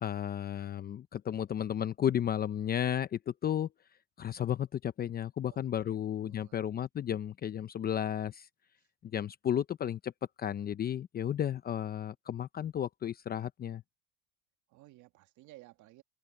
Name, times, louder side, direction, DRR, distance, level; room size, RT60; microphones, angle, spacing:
voice 1, 0.0-3.7 4.2-8.5 9.0-10.1 10.4-13.8, left 10 dB, 25° left, 0.7 m, -33 dB
voice 2, 5.5-6.6 14.7-16.0, right 17 dB, 45° right, 2.0 m, -57 dB
supercardioid pair, 130°, 41 cm